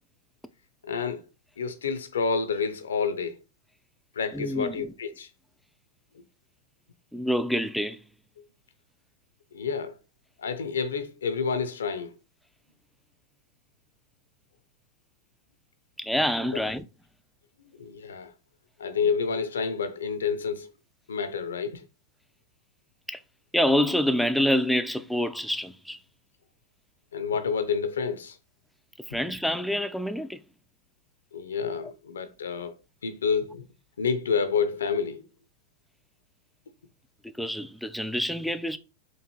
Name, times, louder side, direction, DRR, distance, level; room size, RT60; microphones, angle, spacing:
voice 1, 0.8-1.2 1.6-3.3 4.2-5.3 9.5-9.9 10.4-12.1 16.5-16.6 17.8-18.3 18.8-20.7 21.1-21.8 27.1-28.4 31.3-32.7 33.0-33.6 34.0-35.2, left 5 dB, 85° left, 0.5 m, -29 dB
voice 2, 4.3-4.9 7.1-8.0 16.0-16.9 23.1-23.2 23.5-26.0 29.1-30.4 31.8-31.9 37.2-38.8, equal, ahead, 0.3 m, -27 dB
4.4 x 2.6 x 2.9 m
hypercardioid pair, 95°, 0 cm